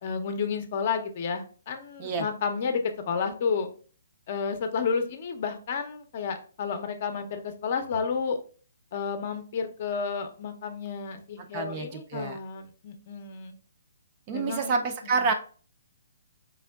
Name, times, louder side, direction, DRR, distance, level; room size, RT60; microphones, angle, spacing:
voice 1, 0.0-2.8 3.1-3.7 4.3-8.4 8.9-13.5 14.3-14.8 15.2-15.3, left 5 dB, 40° left, 7 dB, 0.6 m, -31 dB
voice 2, 11.5-12.4 14.3-15.3, right 4 dB, 30° right, 5 dB, 0.5 m, -28 dB
4.2 x 3.5 x 2.3 m, 0.40 s
hypercardioid pair, 160°, 0 cm